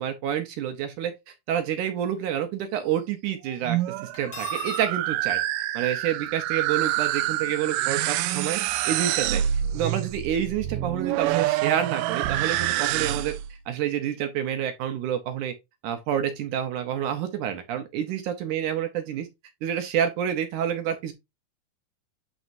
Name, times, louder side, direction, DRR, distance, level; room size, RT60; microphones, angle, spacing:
voice 1, 0.0-5.4 5.7-8.6 8.9-9.4 9.7-13.3 13.7-15.5 15.8-19.3 19.6-21.1, right 9 dB, 70° right, 2.0 m, -28 dB
sound 1, 3.5-13.5, right 13 dB, 90° right, 1.8 m, -27 dB
Cutlery silverware, 4.1-4.9, left 9 dB, 40° left, 2.9 m, -39 dB
11.5 x 4.2 x 2.6 m
omnidirectional pair, 4.4 m